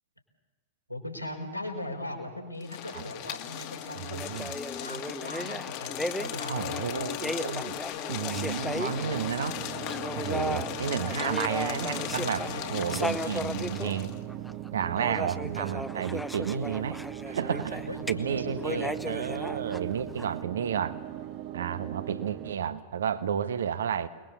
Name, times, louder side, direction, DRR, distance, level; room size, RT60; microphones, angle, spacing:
voice 1, 0.9-7.1 12.4-13.7 17.6-19.1, left 1 dB, 90° left, 2 dB, 4.6 m, -40 dB
sound 1, 2.6-14.2, left 11 dB, 45° left, 2.1 m, -37 dB
voice 2, 4.0-4.5 6.5-7.8 8.1-9.6 10.2-14.1 14.7-17.0 17.2-17.8 18.1-21.0 21.5-24.1, right 8 dB, 65° right, 11 dB, 1.5 m, -32 dB
sound 2, 4.1-9.5 9.8-18.1 18.6-20.2, left 1 dB, ahead, 1.1 m, -36 dB
sound 3, 8.3-22.6, right 12 dB, 40° right, 1.5 m, -40 dB
29.0 x 21.0 x 7.0 m, 1.3 s
figure-of-eight pair, 90°, 0 cm